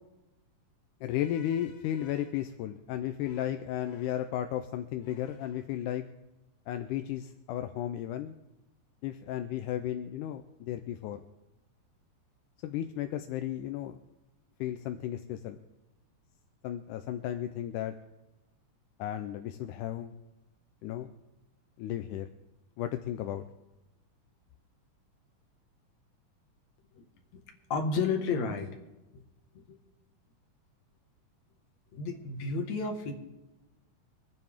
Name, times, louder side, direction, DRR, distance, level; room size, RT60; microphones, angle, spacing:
voice 1, 1.0-6.1 6.7-8.3 9.0-11.2 12.6-14.0 14.6-15.6 16.6-18.0 19.0-20.1 20.8-21.1 21.8-22.3 22.8-23.4, left 11 dB, 80° left, 7 dB, 2.1 m, -34 dB
voice 2, 27.7-28.8 29.5-29.8 31.9-33.1, left 4 dB, 60° left, 4 dB, 2.7 m, -31 dB
25.5 x 9.4 x 3.6 m, 1.0 s
omnidirectional pair, 3.8 m